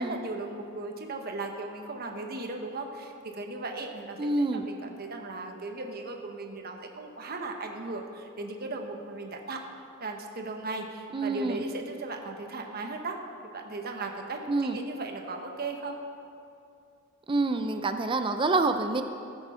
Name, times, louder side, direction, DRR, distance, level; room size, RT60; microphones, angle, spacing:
voice 1, 0.0-9.6 10.0-13.2 13.4-16.0, right 3 dB, 45° right, 3 dB, 1.1 m, -37 dB
voice 2, 4.2-4.7 11.1-11.6 14.5-14.8 17.3-19.0, right 3 dB, 25° right, 8 dB, 0.5 m, -27 dB
14.5 x 7.0 x 5.6 m, 2.5 s
head